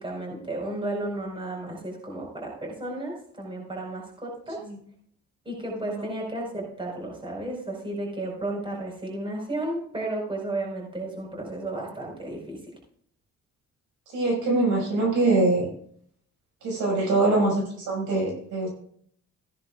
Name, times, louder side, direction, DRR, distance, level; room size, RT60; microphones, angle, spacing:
voice 1, 0.0-4.6 5.4-12.6, right 2 dB, 15° right, -1 dB, 4.8 m, -33 dB
voice 2, 14.1-15.7 16.6-18.7, right 2 dB, 85° right, -2 dB, 5.6 m, -23 dB
15.5 x 10.5 x 2.4 m, 0.62 s
cardioid pair, 90°, 30 cm